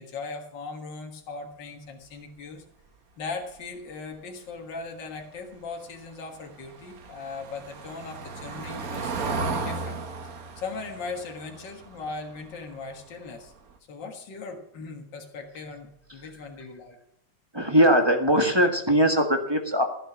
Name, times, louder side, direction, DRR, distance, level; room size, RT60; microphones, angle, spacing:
voice 1, 0.0-2.6 3.2-10.0 10.6-13.5 13.9-17.0, left 4 dB, 75° left, 3 dB, 2.3 m, -39 dB
Car passing by / Engine, 5.9-12.9 13.2-13.5 13.8-13.9, right 4 dB, 50° right, 1.6 m, -35 dB
voice 2, 17.5-19.8, equal, 15° right, 5 dB, 1.5 m, -20 dB
14.5 x 7.9 x 6.1 m, 0.74 s
omnidirectional pair, 2.0 m